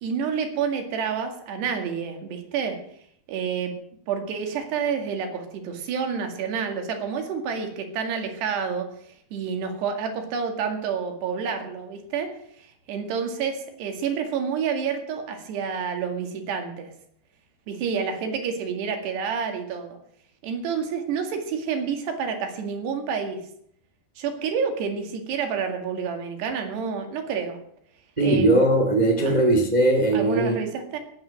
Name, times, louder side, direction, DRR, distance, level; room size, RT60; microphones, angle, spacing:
voice 1, 0.0-2.8 3.3-3.7 4.1-8.9 9.3-12.3 12.6-16.9 17.7-20.0 20.4-23.4 24.2-27.6 28.2-28.5 29.2-29.3 30.1-31.0, right 6 dB, 70° right, 5 dB, 4.1 m, -29 dB
voice 2, 28.2-30.6, right 2 dB, 45° right, 2 dB, 0.5 m, -19 dB
19.5 x 8.8 x 6.4 m, 0.67 s
omnidirectional pair, 5.2 m